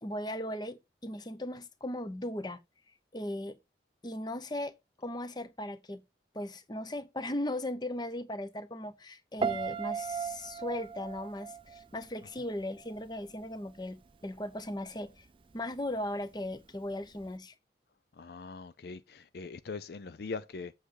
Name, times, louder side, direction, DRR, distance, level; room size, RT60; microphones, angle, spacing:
voice 1, 0.0-2.6 3.1-3.6 4.0-6.0 6.3-15.3 15.5-17.5, left 1 dB, 25° left, 0.9 m, -37 dB
Piano, 9.4-12.5 12.8-13.2, right 6 dB, 30° right, 0.4 m, -36 dB
voice 2, 18.1-20.7, left 4 dB, 60° left, 0.5 m, -42 dB
8.4 x 6.5 x 3.8 m
head